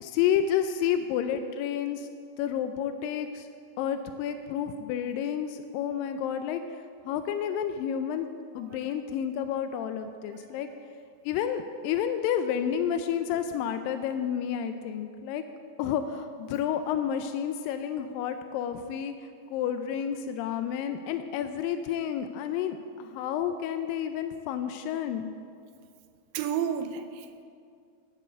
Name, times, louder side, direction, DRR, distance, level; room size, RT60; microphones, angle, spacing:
voice 1, 0.0-2.1 2.4-3.5 3.8-8.3 8.6-10.7 11.3-15.4 15.8-25.3, left 9 dB, 90° left, 8 dB, 2.3 m, -30 dB
voice 2, 10.3-10.8 26.3-27.4, right 8 dB, 85° right, 8 dB, 2.3 m, -32 dB
9.3 x 8.1 x 7.9 m, 2.3 s
omnidirectional pair, 3.9 m